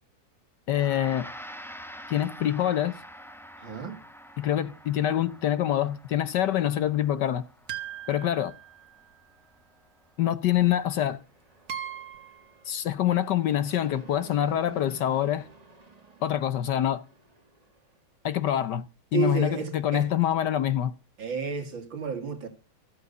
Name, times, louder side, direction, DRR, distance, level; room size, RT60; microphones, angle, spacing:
voice 1, 0.7-1.3 2.1-3.0 4.4-7.4 8.1-8.5 10.2-11.2 12.7-15.5 16.2-17.0 18.2-18.8 19.1-20.9, left 11 dB, 65° left, 1.3 m, -25 dB
Gong, 0.7-10.2, equal, 5° left, 0.4 m, -47 dB
voice 2, 3.6-4.0 19.1-20.1 21.2-22.5, right 6 dB, 65° right, 2.8 m, -31 dB
sound 1, 7.7-9.2 10.6-10.7 11.7-12.5, right 9 dB, 45° right, 1.8 m, -39 dB
Fixed-wing aircraft airplane, 10.6-18.0, right 3 dB, 20° right, 1.5 m, -52 dB
14.0 x 8.1 x 6.6 m
omnidirectional pair, 2.2 m